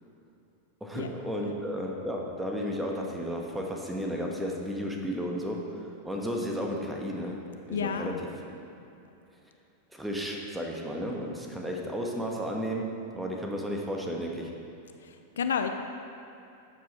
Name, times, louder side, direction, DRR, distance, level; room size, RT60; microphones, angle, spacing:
voice 1, 0.8-7.4 7.6-8.6 9.9-14.5, equal, 5° right, 0 dB, 1.4 m, -33 dB
voice 2, 7.7-8.2 15.0-15.7, left 7 dB, 65° left, 7 dB, 0.5 m, -31 dB
12.0 x 7.7 x 4.3 m, 2.7 s
figure-of-eight pair, 90°, 0 cm